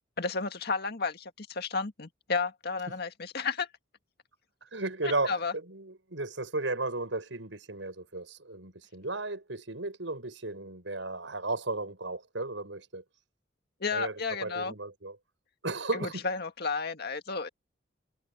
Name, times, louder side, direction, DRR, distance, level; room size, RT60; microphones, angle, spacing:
voice 1, 0.2-3.7 5.0-5.5 13.8-14.7 15.9-17.5, left 4 dB, 60° left, 1.9 m, -32 dB
voice 2, 4.7-13.0 13.9-14.1 14.4-15.2 15.6-16.2, right 2 dB, 90° right, 5.7 m, -34 dB
head